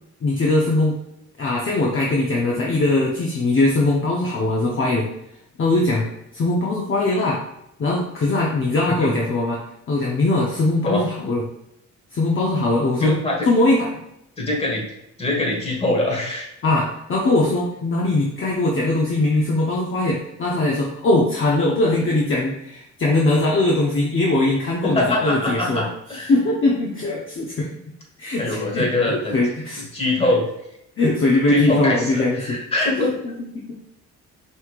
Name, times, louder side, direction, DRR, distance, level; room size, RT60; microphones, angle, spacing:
voice 1, 0.2-1.0 1.4-5.1 5.6-6.1 6.3-7.4 7.8-9.6 9.9-11.4 12.1-13.2 13.5-13.9 16.6-25.9 26.3-27.7 28.2-29.8 31.0-32.6 33.2-33.8, left 2 dB, 40° left, -2 dB, 0.8 m, -21 dB
voice 2, 13.0-13.5 14.4-14.8 15.2-16.5 24.8-26.3 28.4-29.4 29.9-30.4 31.5-33.1, left 2 dB, 20° left, -2 dB, 1.5 m, -23 dB
5.4 x 3.2 x 2.4 m, 0.80 s
cardioid pair, 90°, 30 cm